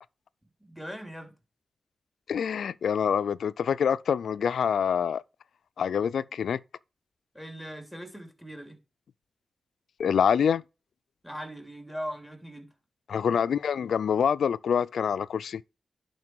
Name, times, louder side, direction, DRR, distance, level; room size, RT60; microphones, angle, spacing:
voice 1, 0.6-1.3 7.3-8.8 11.2-12.7, equal, ahead, 3.1 m, -40 dB
voice 2, 2.3-5.2 5.8-6.6 10.0-10.6 13.1-15.6, left 7 dB, 90° left, 0.3 m, -26 dB
11.0 x 4.3 x 4.6 m
cardioid pair, 55°, 0 cm